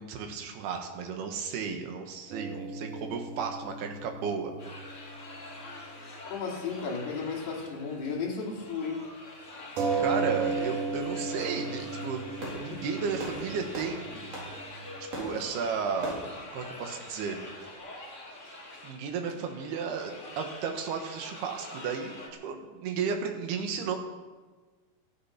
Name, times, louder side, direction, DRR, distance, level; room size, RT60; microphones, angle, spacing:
voice 1, 0.0-4.6 9.9-12.3 12.6-14.3 15.2-16.2 16.5-17.4 18.8-22.2 22.4-24.0, right 6 dB, 70° right, 4 dB, 3.5 m, -33 dB
sound 1, 2.3-6.2 6.4-6.5 9.8-15.0, right 4 dB, 55° right, 3.2 m, -35 dB
sound 2, 4.6-22.3, left 2 dB, 35° left, 1.2 m, -45 dB
voice 2, 6.3-9.0, left 5 dB, 70° left, -1 dB, 4.7 m, -34 dB
Fireworks, 12.1-17.7, right 1 dB, 40° right, 5.0 m, -43 dB
14.5 x 14.0 x 5.9 m, 1.3 s
omnidirectional pair, 4.8 m